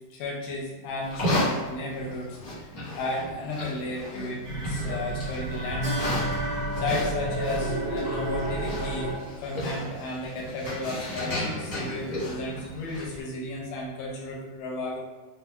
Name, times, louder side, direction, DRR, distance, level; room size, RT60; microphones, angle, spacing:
voice 1, 0.1-2.7 3.0-6.1 6.8-15.0, left 2 dB, 85° left, -3 dB, 2.1 m, -34 dB
Livestock farm animals working animals, 1.0-13.2, left 1 dB, 65° left, 1.1 m, -34 dB
sound 1, 4.4-9.4, right 1 dB, 80° right, 0.9 m, -31 dB
Keyboard (musical), 5.8-8.7, left 1 dB, 55° right, 1.1 m, -37 dB
5.2 x 2.0 x 2.2 m, 1.3 s
omnidirectional pair, 3.6 m